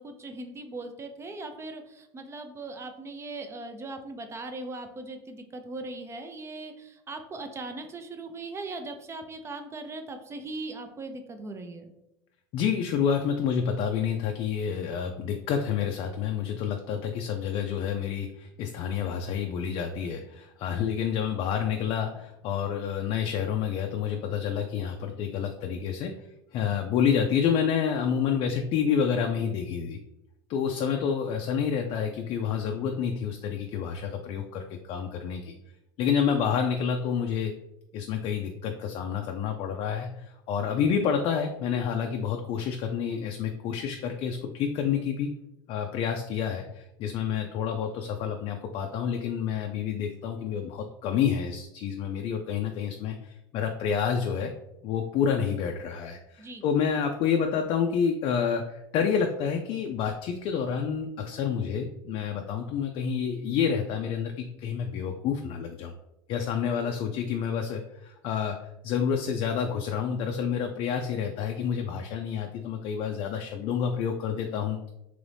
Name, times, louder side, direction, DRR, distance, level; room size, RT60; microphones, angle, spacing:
voice 1, 0.0-11.9 56.4-56.6, right 2 dB, 25° right, 6 dB, 0.5 m, -39 dB
voice 2, 12.5-26.1 26.5-30.0 30.5-35.5 36.0-37.5 37.9-45.3 45.7-54.5 54.8-65.9 66.3-68.6 68.8-74.8, left 7 dB, 50° left, 4 dB, 0.4 m, -28 dB
3.0 x 2.5 x 3.3 m, 0.86 s
supercardioid pair, 100°, 12 cm